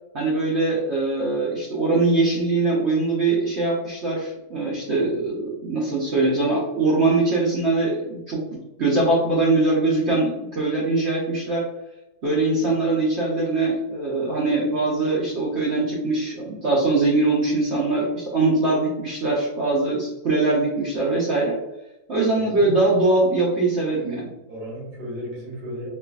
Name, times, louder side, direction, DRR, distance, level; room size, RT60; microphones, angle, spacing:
voice 1, 0.1-8.4 8.8-11.6 12.2-21.6 22.1-24.3, right 2 dB, 55° right, -5 dB, 0.9 m, -22 dB
voice 2, 22.3-22.8 24.5-25.9, equal, 75° right, -4 dB, 1.8 m, -34 dB
4.6 x 2.4 x 2.4 m, 0.92 s
omnidirectional pair, 1.6 m